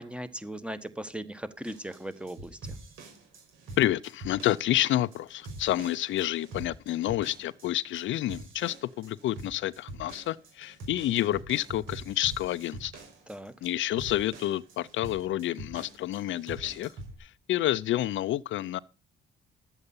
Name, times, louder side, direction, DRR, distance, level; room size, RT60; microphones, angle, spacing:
voice 1, 0.0-2.6 13.3-13.5, right 1 dB, 5° right, 1.3 m, -38 dB
sound 1, 1.6-17.2, right 2 dB, 85° right, 5.5 m, -45 dB
voice 2, 3.8-12.9 13.6-16.9 17.2-18.8, left 14 dB, 75° left, 0.5 m, -29 dB
11.5 x 8.1 x 5.5 m
cardioid pair, 90°, 20 cm